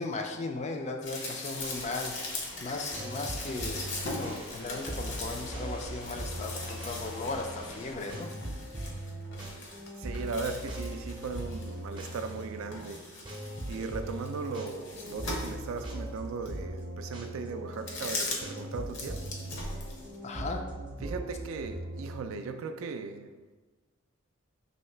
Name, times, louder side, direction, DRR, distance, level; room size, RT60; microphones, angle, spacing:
voice 1, 0.0-2.2 2.6-8.3 20.2-20.6, left 3 dB, 35° left, 0.3 m, -36 dB
sound 1, 1.0-12.4 12.7-15.9 16.5-16.6 17.7-18.6 18.9-20.2, left 2 dB, 60° left, 0.7 m, -40 dB
sound 2, 1.5-7.9, left 1 dB, 85° left, 1.0 m, -47 dB
sound 3, 2.5-22.2, right 1 dB, 25° right, 0.5 m, -40 dB
voice 2, 10.0-13.1 13.7-19.3 21.0-23.3, right 4 dB, 75° right, 0.3 m, -37 dB
3.1 x 2.8 x 4.4 m
head